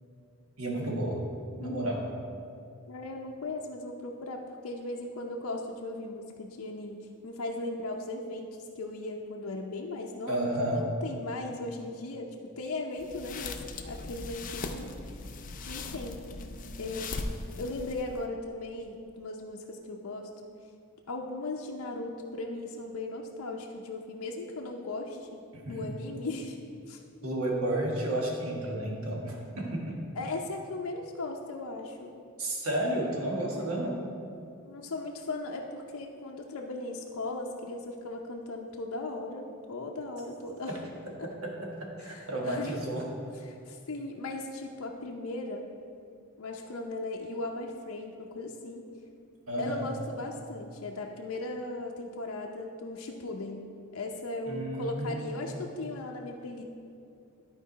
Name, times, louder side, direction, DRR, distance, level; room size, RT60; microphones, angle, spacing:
voice 1, 0.6-1.2 1.6-2.0 10.3-10.9 25.5-25.8 27.2-30.0 32.4-34.0 40.7-40.8 41.4-43.1 49.5-49.9 54.5-55.5, right 1 dB, 75° right, -1 dB, 1.5 m, -32 dB
voice 2, 1.6-2.1 2.9-8.5 8.8-12.3 12.6-15.2 15.7-16.2 16.8-17.1 17.6-20.3 21.1-25.4 25.7-26.6 26.9-27.0 30.2-32.1 34.6-40.8 42.0-42.7 43.5-45.7 46.4-48.8 49.6-53.7 53.9-56.6, left 2 dB, 80° left, 0 dB, 0.6 m, -37 dB
sound 1, 13.0-18.2, left 3 dB, 40° left, 0.4 m, -39 dB
11.5 x 4.6 x 4.1 m, 2.4 s
head